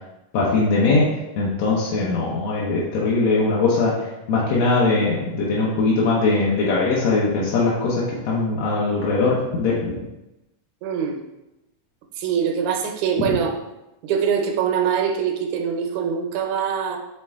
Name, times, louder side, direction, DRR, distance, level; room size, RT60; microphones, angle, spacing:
voice 1, 0.3-1.1 1.4-3.9 4.3-9.9, left 3 dB, 65° left, -6 dB, 1.8 m, -20 dB
voice 2, 10.8-11.2 12.2-13.6 14.0-17.0, right 7 dB, 75° right, 3 dB, 2.1 m, -23 dB
7.3 x 3.7 x 3.6 m, 0.96 s
omnidirectional pair, 3.8 m